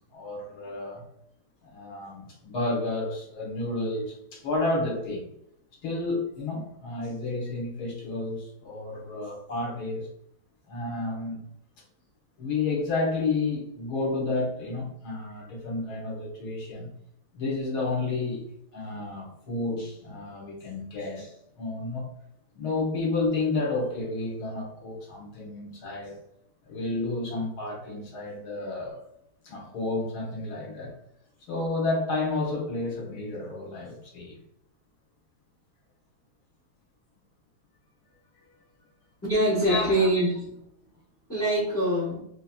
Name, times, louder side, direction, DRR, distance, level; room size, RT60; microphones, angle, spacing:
voice 1, 0.1-1.0 1.6-5.3 5.8-10.1 10.7-11.4 12.4-16.9 17.3-18.4 18.7-22.1 22.5-26.2 26.6-29.0 29.4-31.0 31.5-34.4 39.7-40.1, left 3 dB, 55° left, -2 dB, 1.5 m, -31 dB
voice 2, 39.3-40.5 41.3-42.2, right 1 dB, 15° left, -7 dB, 0.4 m, -24 dB
3.3 x 2.9 x 2.3 m, 0.74 s
omnidirectional pair, 2.3 m